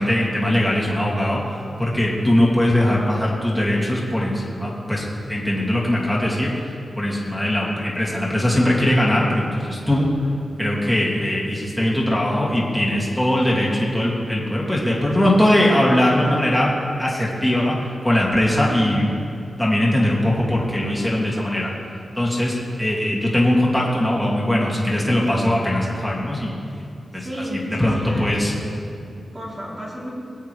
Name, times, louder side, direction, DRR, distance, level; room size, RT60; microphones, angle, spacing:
voice 1, 0.0-1.4 1.8-6.7 7.0-10.1 10.6-16.7 17.0-17.8 18.0-19.1 19.6-21.7 22.2-26.5 27.1-27.3 27.8-28.5, left 1 dB, 5° left, -5 dB, 2.3 m, -20 dB
voice 2, 27.1-28.9 29.3-30.1, equal, 25° right, -6 dB, 3.1 m, -32 dB
20.0 x 8.2 x 3.3 m, 2.6 s
wide cardioid pair, 110°, 0 cm